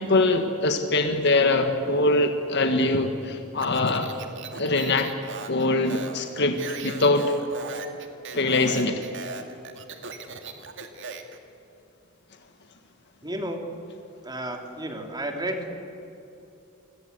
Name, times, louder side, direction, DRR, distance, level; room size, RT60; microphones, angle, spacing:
voice 1, 0.0-4.1 4.5-5.1 5.5-7.4 8.3-9.0, left 2 dB, 55° left, 5 dB, 1.7 m, -23 dB
Speech, 3.6-11.4, right 4 dB, 65° right, 2.2 m, -38 dB
voice 2, 13.2-13.6 14.2-15.7, right 1 dB, 20° right, 3 dB, 3.0 m, -32 dB
28.5 x 21.5 x 8.2 m, 2.8 s
head